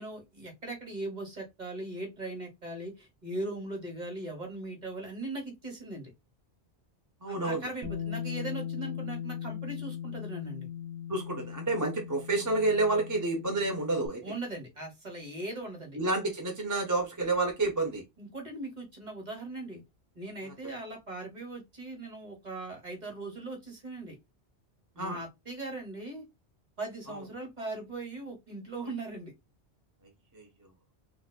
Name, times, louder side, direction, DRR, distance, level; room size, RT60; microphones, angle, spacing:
voice 1, 0.0-6.1 7.3-10.7 14.2-16.0 18.2-19.8 20.1-24.2 24.9-26.2 26.8-29.3, right 2 dB, 45° right, 1.5 m, -39 dB
voice 2, 7.2-7.6 11.1-14.2 15.9-18.0 25.0-25.2 30.3-30.5, right 2 dB, 20° right, 0.7 m, -29 dB
Bass guitar, 7.8-14.1, left 9 dB, 90° right, 1.1 m, -39 dB
3.9 x 2.5 x 2.3 m
omnidirectional pair, 1.1 m